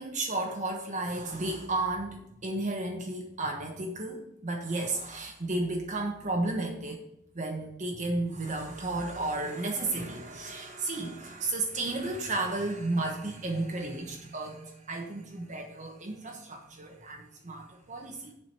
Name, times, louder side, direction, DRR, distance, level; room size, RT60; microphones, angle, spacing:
voice 1, 0.0-7.0 7.3-18.3, right 2 dB, 40° right, 1 dB, 1.2 m, -33 dB
7.5 x 5.1 x 6.5 m, 0.80 s
head